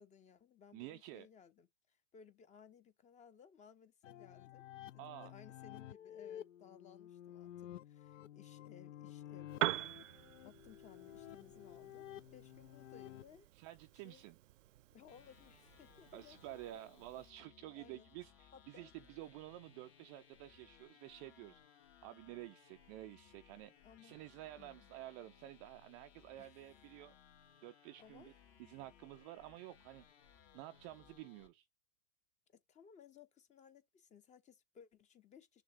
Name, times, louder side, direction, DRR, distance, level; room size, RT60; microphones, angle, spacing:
voice 1, 0.0-4.6 4.9-9.9 10.4-13.5 14.0-14.2 14.9-16.4 16.7-16.8 17.8-18.1 18.5-18.9 23.8-24.2 24.6-24.9 26.4-26.7 28.0-28.3 32.5-35.6, left 7 dB, 20° left, 0.8 m, -61 dB
voice 2, 0.7-1.3 5.0-5.3 13.5-14.4 16.1-21.6 22.0-23.7 24.0-27.2 27.6-28.3 28.6-30.0 30.5-31.6, right 15 dB, 25° right, 0.4 m, -51 dB
sound 1, 4.0-13.2, left 12 dB, 70° left, 0.6 m, -52 dB
Piano, 9.5-17.3, right 14 dB, 70° right, 0.6 m, -45 dB
sound 2, 15.1-31.5, left 8 dB, 45° left, 2.8 m, -65 dB
6.4 x 3.0 x 5.1 m
hypercardioid pair, 125°, 39 cm